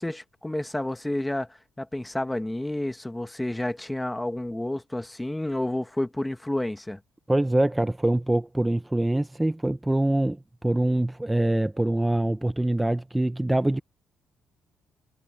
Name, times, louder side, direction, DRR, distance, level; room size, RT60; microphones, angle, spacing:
voice 1, 0.0-7.0, left 1 dB, 10° left, 1.6 m, -30 dB
voice 2, 7.3-13.8, right 1 dB, 10° right, 0.7 m, -24 dB
cardioid pair, 80°, 0 cm